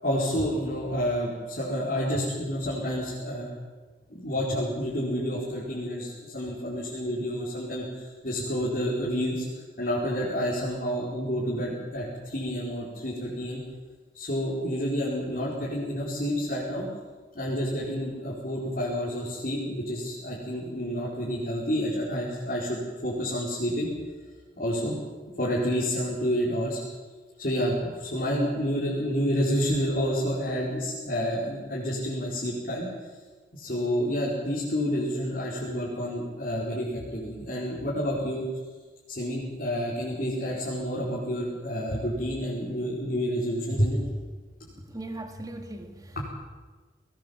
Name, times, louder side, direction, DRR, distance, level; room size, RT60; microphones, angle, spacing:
voice 1, 0.0-3.5 4.1-9.4 9.8-13.6 14.1-16.9 17.3-23.9 24.6-24.9 25.4-26.8 27.4-32.9 33.5-38.4 39.1-44.0 46.1-46.3, equal, 50° left, -7 dB, 5.1 m, -29 dB
voice 2, 44.7-46.3, right 1 dB, 20° right, 5 dB, 2.0 m, -40 dB
20.5 x 20.0 x 7.3 m, 1.3 s
head